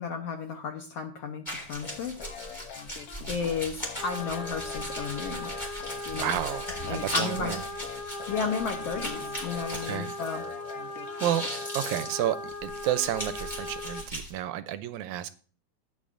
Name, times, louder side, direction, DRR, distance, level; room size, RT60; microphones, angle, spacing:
voice 1, 0.0-2.1 3.3-5.5 6.0-6.3 6.8-7.5 8.3-10.4, left 5 dB, 65° left, 1.7 m, -33 dB
sound 1, 1.5-10.7 11.0-14.3, equal, 15° left, 3.3 m, -38 dB
sound 2, 1.8-12.3, left 9 dB, 90° left, 1.2 m, -45 dB
sound 3, 4.0-14.0, left 2 dB, 50° left, 1.0 m, -38 dB
voice 2, 6.2-7.6 9.7-10.1 10.9-11.5 11.7-15.3, right 12 dB, 80° right, 1.8 m, -31 dB
16.0 x 8.8 x 2.5 m
omnidirectional pair, 3.5 m